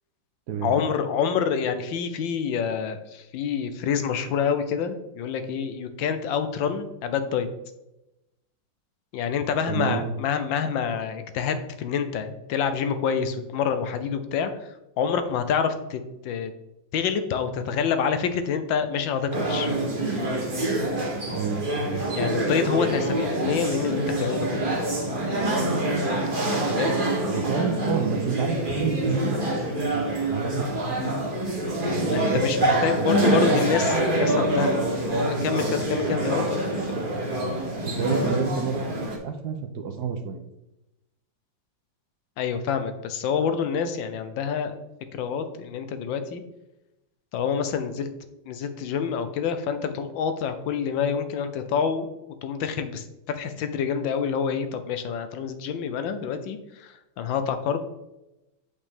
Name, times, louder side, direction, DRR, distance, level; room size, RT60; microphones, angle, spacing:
voice 1, 0.6-7.5 9.1-14.5 15.0-16.5 16.9-19.7 22.1-24.7 26.7-27.0 32.1-34.9 35.3-36.6 36.9-37.0 42.4-44.8 45.1-46.4 47.3-48.1 48.5-52.1 52.4-57.8, left 7 dB, 80° left, 9 dB, 1.5 m, -27 dB
voice 2, 9.7-10.1 21.3-22.0 27.2-31.2 31.9-33.9 37.8-40.4, right 6 dB, 65° right, 7 dB, 1.1 m, -30 dB
sound 1, 19.3-39.2, right 1 dB, 30° right, 1.6 m, -26 dB
8.3 x 5.3 x 3.5 m, 0.92 s
omnidirectional pair, 2.1 m